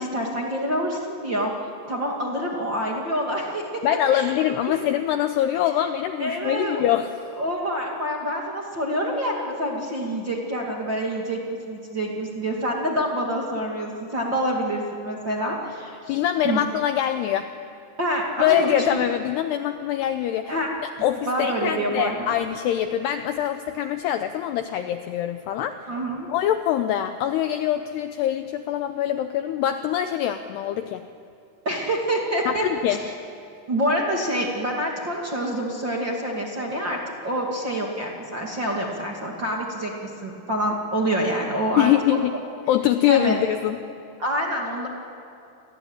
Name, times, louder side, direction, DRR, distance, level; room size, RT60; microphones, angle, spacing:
voice 1, 0.0-1.5 1.9-3.8 4.1-4.3 4.7-4.8 5.8-5.9 6.2-6.8 7.4-16.6 18.0-19.0 20.5-20.7 21.3-22.4 25.9-26.3 31.6-33.0 33.7-42.2 43.1-43.4 44.2-44.9, right 1 dB, 35° right, -2 dB, 2.0 m, -27 dB
voice 2, 3.8-7.1 16.1-17.5 18.4-20.6 21.0-25.8 26.3-31.0 32.5-33.0 41.8-42.3 42.7-43.8, left 11 dB, 85° left, 8 dB, 2.4 m, -24 dB
29.5 x 21.5 x 8.8 m, 2.7 s
omnidirectional pair, 5.7 m